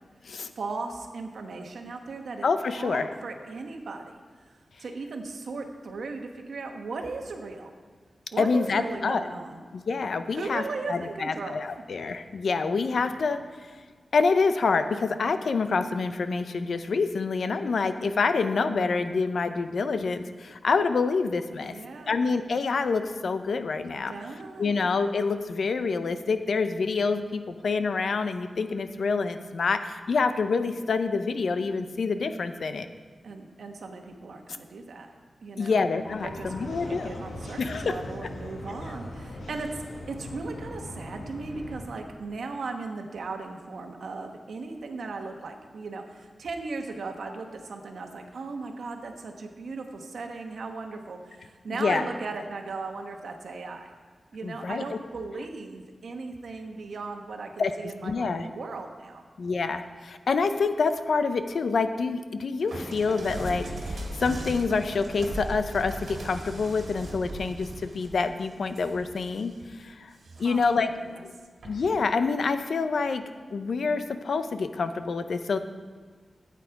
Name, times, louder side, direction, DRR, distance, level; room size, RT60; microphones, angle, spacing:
voice 1, 0.5-2.5 2.8-4.2 4.5-7.7 8.3-9.6 10.3-11.6 21.6-22.3 23.8-24.8 33.2-35.1 35.4-35.8 36.2-53.9 54.3-59.2 70.4-70.6 71.0-71.2, right 3 dB, 85° right, 4 dB, 1.1 m, -37 dB
voice 2, 2.4-3.1 8.4-9.2 9.7-10.6 10.9-13.4 14.1-21.7 22.1-24.1 24.6-32.9 35.6-37.1 37.6-37.9 51.8-52.1 54.4-54.8 57.6-57.7 58.0-58.5 59.4-69.5 69.8-70.1 70.4-70.9 71.2-71.3 71.6-73.2 73.5-75.6, left 4 dB, 65° left, 9 dB, 0.6 m, -27 dB
sound 1, 36.0-41.8, left 1 dB, 90° left, 1.5 m, -40 dB
sound 2, 62.7-69.7 70.1-70.8 71.6-71.9, right 1 dB, 65° right, 2.0 m, -38 dB
12.5 x 8.4 x 4.6 m, 1.5 s
wide cardioid pair, 175°, 0 cm